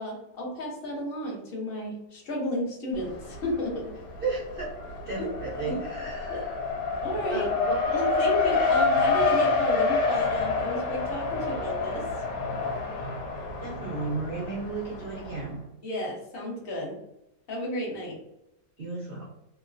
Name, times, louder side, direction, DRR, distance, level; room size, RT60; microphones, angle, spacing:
voice 1, 0.0-3.9 5.2-5.3 5.6-5.8 6.3-6.4 7.0-7.5 7.9-12.1 15.8-17.0 17.5-18.2, equal, 50° left, -2 dB, 0.7 m, -33 dB
Race car auto racing, 2.9-3.7 4.0-15.3, left 4 dB, 80° left, 1.3 m, -28 dB
voice 2, 4.2-4.7 5.1-6.5 7.3-7.8 13.6-15.6 18.8-19.3, right 3 dB, 70° right, -5 dB, 0.5 m, -34 dB
3.0 x 2.2 x 2.4 m, 0.84 s
omnidirectional pair, 1.9 m